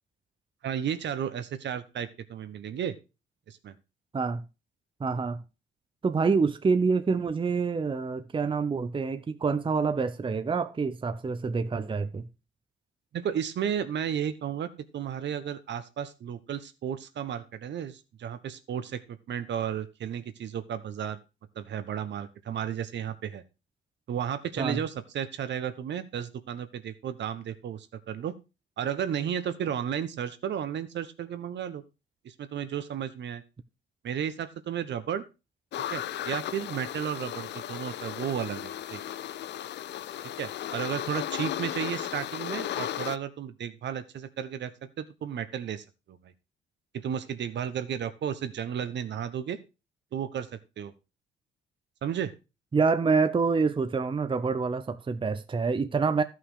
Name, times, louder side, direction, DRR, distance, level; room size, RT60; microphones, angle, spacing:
voice 1, 0.6-2.9 3.5-3.7 13.1-21.2 21.5-23.4 24.1-28.4 28.8-31.8 32.2-33.4 34.0-35.2 35.9-39.0 40.4-46.3 46.9-49.6 50.1-50.9 52.0-52.3, right 9 dB, 65° right, 1.2 m, -33 dB
voice 2, 5.0-5.4 6.0-12.3 24.6-24.8 52.7-56.2, right 4 dB, 25° right, 0.7 m, -27 dB
sound 1, 35.7-43.2, left 11 dB, 60° left, 0.5 m, -35 dB
12.5 x 5.8 x 4.9 m
cardioid pair, 90°, 20 cm